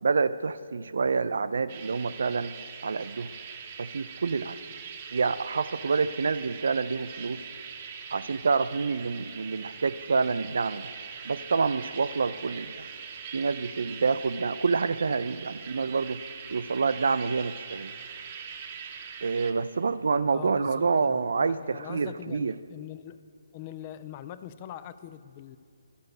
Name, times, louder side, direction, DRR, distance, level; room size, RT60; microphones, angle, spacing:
voice 1, 0.0-2.6 2.8-3.3 3.8-4.6 5.1-7.4 8.1-10.9 11.2-12.9 13.3-16.2 16.5-17.9 19.2-22.5, right 4 dB, 65° right, 14 dB, 0.4 m, -27 dB
sound 1, 1.7-19.5, right 7 dB, 35° right, 0.8 m, -42 dB
voice 2, 20.3-23.2 23.5-25.6, left 11 dB, 30° left, 14 dB, 0.3 m, -43 dB
12.5 x 5.2 x 6.4 m, 2.5 s
figure-of-eight pair, 140°, 0 cm